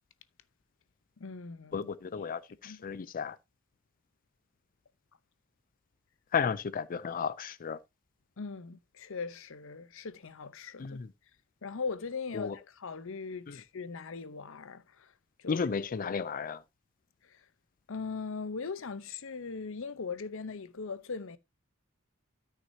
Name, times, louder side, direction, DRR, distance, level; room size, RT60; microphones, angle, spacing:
voice 1, 1.2-1.9 2.6-2.8 8.4-11.0 11.6-15.1 15.4-15.7 16.0-16.2 17.2-17.4 17.9-21.4, left 4 dB, 65° left, 0.8 m, -40 dB
voice 2, 1.7-3.4 6.3-7.8 10.8-11.1 12.3-12.6 13.5-13.6 15.5-16.6, left 6 dB, 40° left, 0.4 m, -33 dB
13.0 x 5.9 x 2.7 m
head